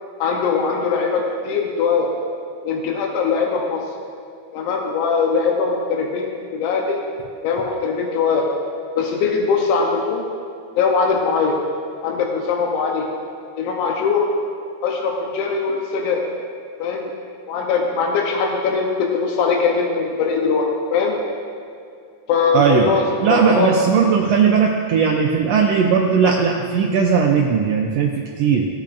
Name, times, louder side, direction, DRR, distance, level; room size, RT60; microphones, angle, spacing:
voice 1, 0.2-2.1 2.6-3.8 4.5-7.0 7.4-8.5 9.0-10.3 10.8-11.6 12.0-13.1 13.6-14.3 14.8-16.2 16.8-17.1 17.5-21.2 22.3-23.8, left 5 dB, 80° left, 0 dB, 2.4 m, -21 dB
voice 2, 22.5-28.7, right 6 dB, 85° right, 1 dB, 1.4 m, -18 dB
17.5 x 8.5 x 2.6 m, 2.4 s
omnidirectional pair, 3.6 m